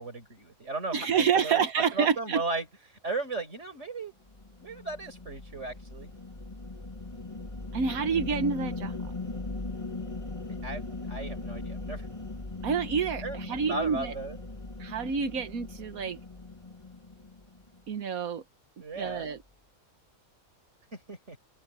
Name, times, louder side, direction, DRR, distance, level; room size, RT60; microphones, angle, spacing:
voice 1, 0.0-4.1 4.6-6.1 10.5-12.1 13.2-13.4 13.7-14.4 18.8-19.3 20.9-21.4, right 3 dB, 50° right, 5.3 m, -36 dB
voice 2, 0.9-2.4 7.7-8.9 12.6-14.1 14.8-16.2 17.9-18.4 19.0-19.4, right 6 dB, 75° right, 1.6 m, -28 dB
sound 1, 4.3-17.8, left 3 dB, 20° left, 1.6 m, -39 dB
open air
omnidirectional pair, 1.5 m